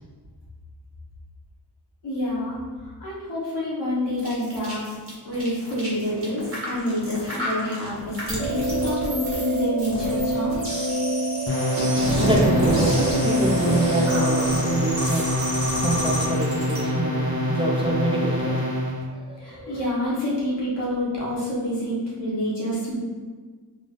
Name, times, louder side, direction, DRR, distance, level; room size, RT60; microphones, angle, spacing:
voice 1, 2.0-4.8 5.2-10.6 19.4-22.9, left 1 dB, 85° left, -7 dB, 1.4 m, -28 dB
sound 1, 4.2-16.8, equal, 30° right, 1.4 m, -29 dB
sound 2, 8.4-14.5, right 1 dB, 55° right, 0.7 m, -26 dB
sound 3, 11.5-19.0, left 1 dB, 30° left, 0.8 m, -26 dB
voice 2, 12.2-15.3 15.8-18.6 19.1-19.8, right 1 dB, 15° right, -3 dB, 0.5 m, -26 dB
3.7 x 3.6 x 2.6 m, 1.5 s
wide cardioid pair, 95°, 41 cm